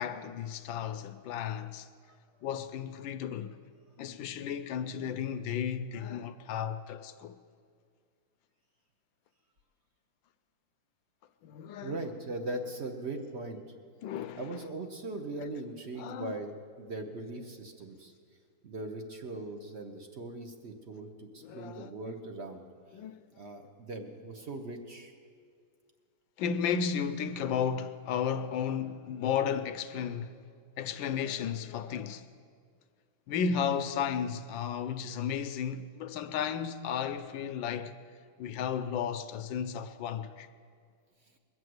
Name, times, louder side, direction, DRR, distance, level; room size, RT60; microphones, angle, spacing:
voice 1, 0.0-1.9 2.4-3.6 4.0-7.3 11.4-12.0 14.0-14.6 16.0-16.3 21.4-22.1 22.9-23.2 26.4-30.4 30.8-32.3 33.3-37.9 38.4-40.5, left 7 dB, 75° left, 1.2 m, -34 dB
voice 2, 11.8-13.6 14.4-18.1 18.6-22.6 23.4-25.1, right 2 dB, 45° right, 0.8 m, -40 dB
21.5 x 7.6 x 7.9 m
omnidirectional pair, 2.4 m